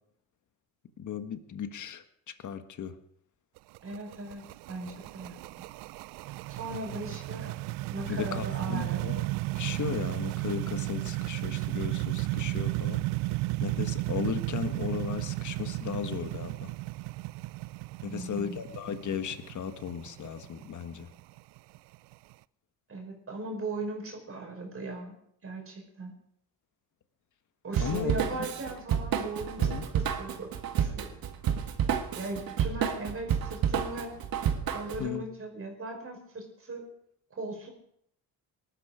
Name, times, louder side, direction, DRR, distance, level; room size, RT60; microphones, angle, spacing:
voice 1, 1.0-2.0 2.4-2.9 8.1-9.2 9.5-13.0 13.6-16.7 18.0-21.1 27.8-28.1 28.4-28.5 29.6-29.9 35.0-35.2, left 8 dB, 50° left, 9 dB, 1.5 m, -36 dB
sound 1, 3.6-22.3, right 20 dB, 80° right, 0.5 m, -34 dB
voice 2, 3.8-4.4 4.7-5.5 6.6-7.5 7.9-9.0 18.0-18.6 22.9-25.1 25.4-26.1 27.6-29.6 29.9-30.5 30.7-31.1 32.2-34.2 34.7-36.9 37.4-37.7, right 2 dB, 35° right, 1 dB, 5.3 m, -38 dB
Drum kit / Drum, 27.7-35.0, right 8 dB, 60° right, 1.8 m, -30 dB
19.5 x 13.0 x 5.1 m, 0.70 s
cardioid pair, 100°, 39 cm